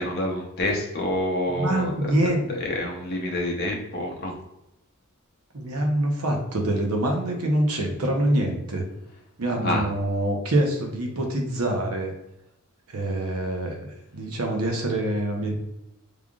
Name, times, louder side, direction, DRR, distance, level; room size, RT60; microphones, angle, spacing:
voice 1, 0.0-4.3 9.6-9.8, left 1 dB, 45° left, 0 dB, 0.8 m, -28 dB
voice 2, 1.5-2.5 5.5-8.8 9.4-12.1 12.9-13.8 14.1-15.6, right 1 dB, 75° right, 2 dB, 0.8 m, -25 dB
3.6 x 3.4 x 2.4 m, 0.87 s
head